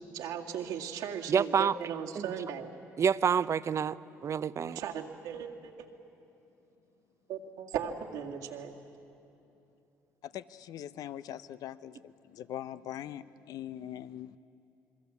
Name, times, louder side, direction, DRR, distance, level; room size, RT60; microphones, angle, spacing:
voice 1, 0.1-2.7 4.6-5.9 7.3-8.7, right 8 dB, 80° right, 0 dB, 2.1 m, -37 dB
voice 2, 1.3-1.8 2.2-2.3 3.0-4.8, right 7 dB, 45° right, 16 dB, 0.6 m, -28 dB
voice 3, 10.2-14.4, left 11 dB, 70° left, 14 dB, 0.7 m, -42 dB
27.5 x 22.0 x 8.3 m, 2.8 s
supercardioid pair, 65°, 7 cm